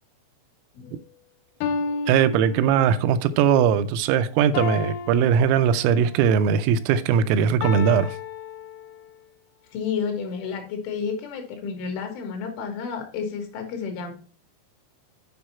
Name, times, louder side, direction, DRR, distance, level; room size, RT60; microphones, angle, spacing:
sound 1, 0.9-1.0 1.6-3.2 4.5-6.2 7.6-9.2, left 5 dB, 90° left, 3.4 m, -32 dB
voice 1, 2.1-8.2, right 8 dB, 85° right, 3.2 m, -20 dB
voice 2, 9.7-14.1, left 6 dB, 75° left, 3.9 m, -31 dB
9.6 x 5.1 x 4.2 m
omnidirectional pair, 5.9 m